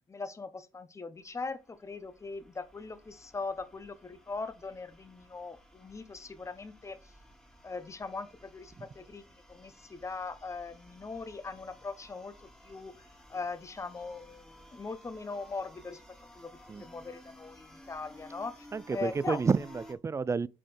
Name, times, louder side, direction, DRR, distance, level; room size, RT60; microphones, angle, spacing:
voice 1, 0.1-7.0 7.6-12.3 12.6-12.9 13.3-16.0 16.3-18.7 18.9-19.4, left 4 dB, 20° left, 0.9 m, -40 dB
sound 1, 1.2-19.9, equal, 5° left, 2.0 m, -56 dB
voice 2, 18.7-20.5, right 5 dB, 20° right, 0.3 m, -30 dB
7.5 x 4.2 x 3.3 m
supercardioid pair, 80°, 13 cm